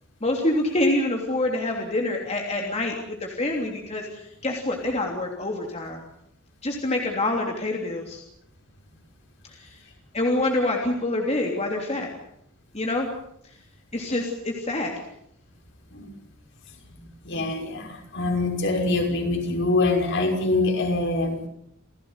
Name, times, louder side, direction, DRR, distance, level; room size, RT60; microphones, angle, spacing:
voice 1, 0.2-6.0 6.6-8.2 9.5-9.8 10.1-12.1 12.7-13.1 13.9-15.0, left 2 dB, 30° left, 1 dB, 3.2 m, -26 dB
voice 2, 17.2-21.4, left 2 dB, 55° left, 2 dB, 5.8 m, -24 dB
29.0 x 17.0 x 8.1 m, 0.74 s
head